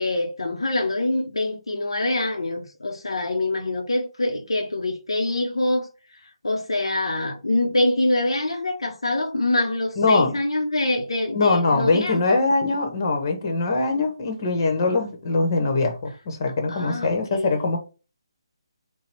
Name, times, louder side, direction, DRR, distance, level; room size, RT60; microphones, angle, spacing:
voice 1, 0.0-12.4 16.7-17.6, left 2 dB, 75° left, 0.8 m, -25 dB
voice 2, 10.0-10.3 11.3-17.8, left 3 dB, 40° left, 1.2 m, -22 dB
4.0 x 2.3 x 4.4 m
figure-of-eight pair, 145°, 3 cm